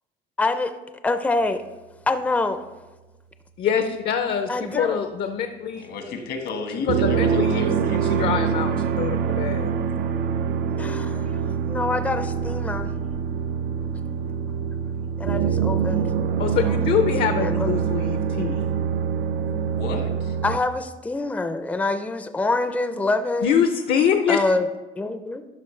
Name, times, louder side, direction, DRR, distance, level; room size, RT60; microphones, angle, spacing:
voice 1, 0.4-0.7 1.0-1.6 2.1-2.6 4.5-5.1 10.7-11.3 11.6-12.9 15.2-16.1 16.6-16.8 17.4-17.7 20.4-23.6 24.3-24.7 25.0-25.4, left 3 dB, 10° left, 9 dB, 0.4 m, -25 dB
voice 2, 3.6-5.8 6.9-9.7 16.4-18.7 23.4-24.4, left 8 dB, 65° left, 7 dB, 0.6 m, -24 dB
voice 3, 5.7-8.5 19.4-20.4, left 4 dB, 80° left, 5 dB, 1.4 m, -33 dB
sound 1, 6.9-20.6, right 7 dB, 70° right, 0.5 m, -25 dB
12.5 x 5.4 x 3.2 m, 1.1 s
cardioid pair, 110°, 17 cm